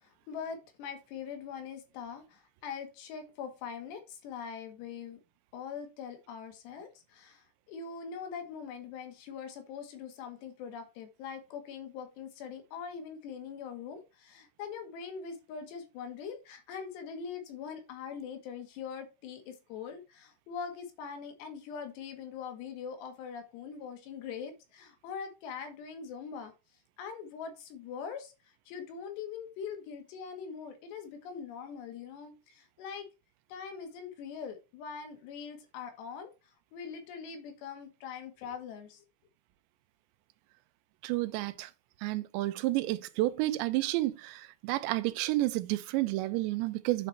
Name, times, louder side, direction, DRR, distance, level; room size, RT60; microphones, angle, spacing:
voice 1, 0.3-5.2 5.5-7.4 7.7-26.5 27.0-28.3 28.7-33.1 33.5-36.3 36.7-39.0, left 6 dB, 75° left, 3.4 m, -42 dB
voice 2, 41.0-41.7 42.0-47.1, right 17 dB, 85° right, 2.9 m, -30 dB
9.0 x 4.4 x 4.3 m
omnidirectional pair, 5.0 m